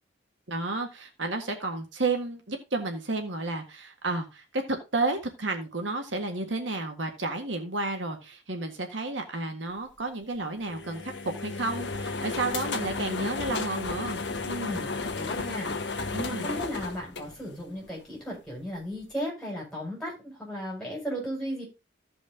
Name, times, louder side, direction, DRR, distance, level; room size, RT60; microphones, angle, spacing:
voice 1, 0.5-14.2 16.1-16.5, right 2 dB, 75° right, 4 dB, 1.7 m, -31 dB
sound 1, 10.6-17.9, left 3 dB, 60° left, 1.1 m, -33 dB
voice 2, 14.4-21.6, equal, 5° left, -3 dB, 5.8 m, -36 dB
15.5 x 5.3 x 3.7 m, 0.27 s
head